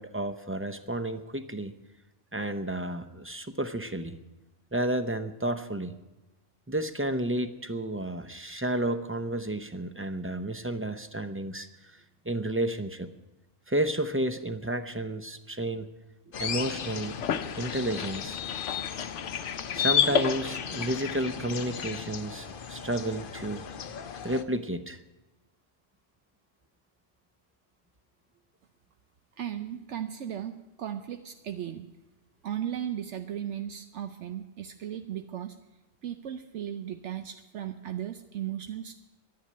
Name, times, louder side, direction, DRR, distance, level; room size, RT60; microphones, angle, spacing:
voice 1, 0.0-1.7 2.3-4.2 4.7-6.0 6.7-12.0 12.2-13.1 13.7-15.9 16.4-17.2 17.5-18.4 19.7-23.7 24.2-25.0, right 1 dB, 15° right, 9 dB, 0.5 m, -31 dB
sound 1, 16.3-24.4, left 6 dB, 50° left, 0.8 m, -39 dB
sound 2, 16.5-22.0, left 8 dB, 75° left, 1.0 m, -31 dB
voice 2, 29.4-31.9 32.4-35.6 36.0-39.0, right 10 dB, 75° right, 7 dB, 1.0 m, -36 dB
11.0 x 10.5 x 9.6 m, 1.0 s
omnidirectional pair, 1.2 m